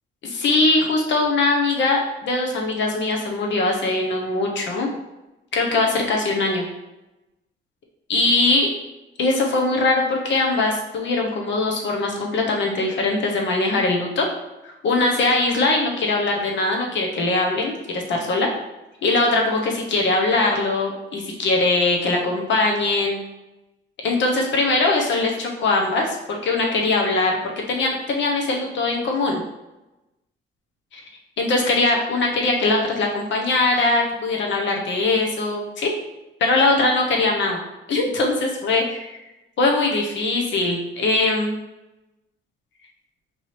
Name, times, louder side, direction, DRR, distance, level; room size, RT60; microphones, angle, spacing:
voice 1, 0.2-4.9 5.5-6.6 8.1-8.7 9.2-14.3 14.6-18.5 19.0-23.2 24.0-27.4 27.7-29.4 31.4-35.9 36.4-37.6 37.9-39.2 39.6-41.5, left 2 dB, 65° left, 0 dB, 1.0 m, -21 dB
4.6 x 2.7 x 3.2 m, 0.99 s
cardioid pair, 90°, 20 cm